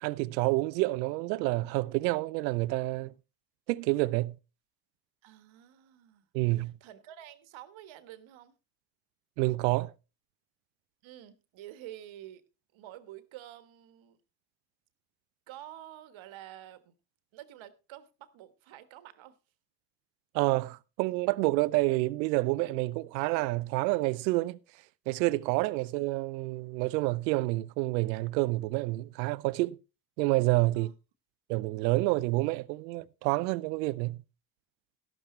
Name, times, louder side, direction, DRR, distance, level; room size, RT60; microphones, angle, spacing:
voice 1, 0.0-3.1 3.7-4.3 6.3-6.7 9.4-9.9 20.3-24.6 25.1-29.8 30.2-30.9 31.5-34.2, right 21 dB, 85° right, 0.6 m, -28 dB
voice 2, 5.2-8.6 11.0-12.4 12.7-14.2 15.5-16.9 17.3-19.4 30.7-30.9, right 12 dB, 70° right, 1.4 m, -49 dB
12.0 x 12.0 x 3.2 m
hypercardioid pair, 45°, 49 cm